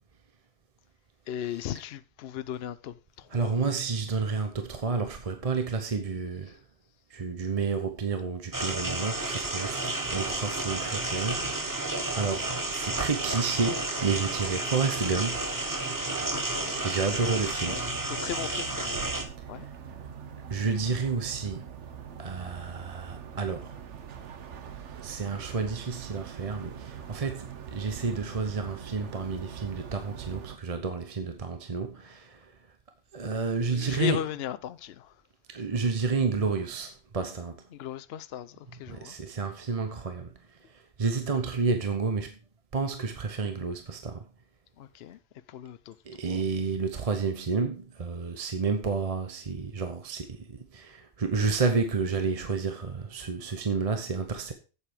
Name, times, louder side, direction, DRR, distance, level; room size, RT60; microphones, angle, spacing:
voice 1, 1.3-3.6 16.3-16.9 17.4-17.8 18.1-19.1 19.5-19.7 33.7-35.1 37.7-39.2 44.8-45.2 45.5-45.9 46.2-46.4, left 10 dB, 65° left, 0.8 m, -37 dB
voice 2, 3.3-6.6 7.1-11.7 12.1-15.4 16.8-17.8 20.5-21.7 22.2-23.8 25.0-32.5 33.1-34.2 35.5-37.6 38.9-40.3 40.7-42.4 42.7-44.2 46.1-54.5, right 4 dB, 35° right, 0.9 m, -30 dB
sound 1, 8.5-19.2, right 2 dB, 20° right, 1.2 m, -32 dB
sound 2, 9.1-17.6, right 7 dB, 60° right, 1.0 m, -41 dB
sound 3, 17.2-30.6, right 8 dB, 85° right, 1.2 m, -43 dB
8.3 x 7.4 x 4.9 m
omnidirectional pair, 1.2 m